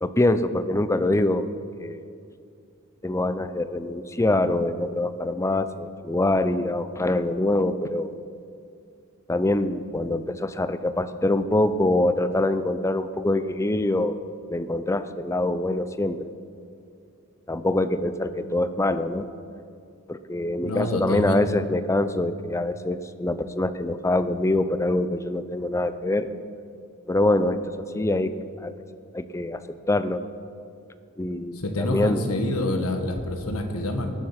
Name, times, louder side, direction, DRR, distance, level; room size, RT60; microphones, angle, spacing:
voice 1, 0.0-1.5 1.8-2.0 3.0-8.1 9.3-14.2 14.5-16.3 17.5-19.3 20.1-26.3 27.1-28.7 29.1-30.2 31.2-32.2, left 2 dB, 15° left, 12 dB, 0.4 m, -24 dB
voice 2, 20.6-21.4 31.5-34.1, left 1 dB, 80° left, 5 dB, 1.5 m, -27 dB
18.5 x 7.6 x 5.8 m, 2.4 s
head